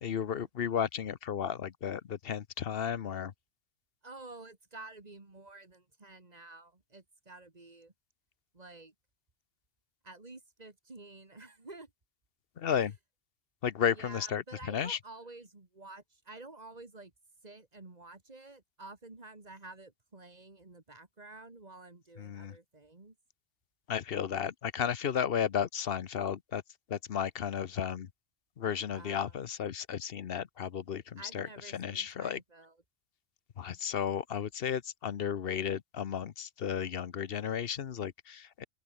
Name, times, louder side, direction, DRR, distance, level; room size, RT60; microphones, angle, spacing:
voice 1, 0.0-3.3 12.6-13.0 13.6-15.0 22.2-22.6 23.9-26.6 26.9-28.1 28.6-32.4 33.6-38.6, left 8 dB, 60° left, 1.0 m, -33 dB
voice 2, 4.0-7.9 8.5-8.9 10.0-11.9 12.7-12.9 13.9-17.1 17.4-23.2 28.9-29.4 31.2-32.8, right 2 dB, 35° right, 2.2 m, -50 dB
open air
omnidirectional pair, 1.2 m